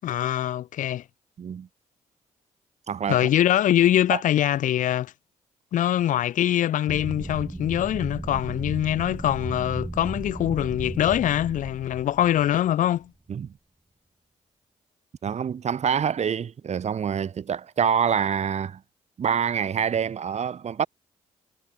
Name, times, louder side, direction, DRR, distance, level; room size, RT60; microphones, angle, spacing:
voice 1, 0.0-1.0 3.1-5.1 5.7-13.1, left 12 dB, 70° left, 0.5 m, -23 dB
voice 2, 1.4-1.7 2.9-3.3 4.1-4.2 13.3-13.5 15.2-18.8 19.2-20.9, right 7 dB, 55° right, 1.0 m, -26 dB
sound 1, 6.9-13.0, right 2 dB, 10° right, 0.6 m, -35 dB
supercardioid pair, 55°, 14 cm